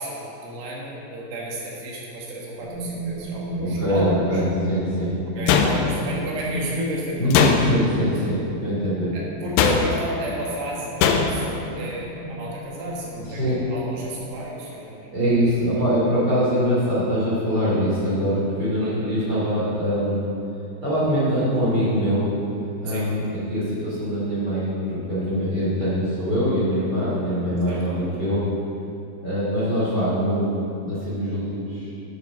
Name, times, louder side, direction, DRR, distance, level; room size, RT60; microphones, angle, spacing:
voice 1, 0.0-4.4 5.4-7.2 8.2-8.3 9.1-15.2 18.8-19.1 22.9-23.1 27.7-27.8, right 1 dB, 80° right, -4 dB, 3.6 m, -32 dB
sound 1, 2.6-14.4, right 1 dB, 60° right, 1.9 m, -34 dB
voice 2, 3.6-5.1 7.2-9.2 13.3-13.6 15.1-20.2 20.8-22.3 22.8-28.5 29.2-30.6 30.8-31.9, equal, 30° right, -9 dB, 2.6 m, -23 dB
sound 2, 5.5-6.2 7.3-8.0 9.6-10.1 11.0-11.5, left 6 dB, 90° left, 2.8 m, -20 dB
9.9 x 7.0 x 5.8 m, 2.7 s
omnidirectional pair, 4.8 m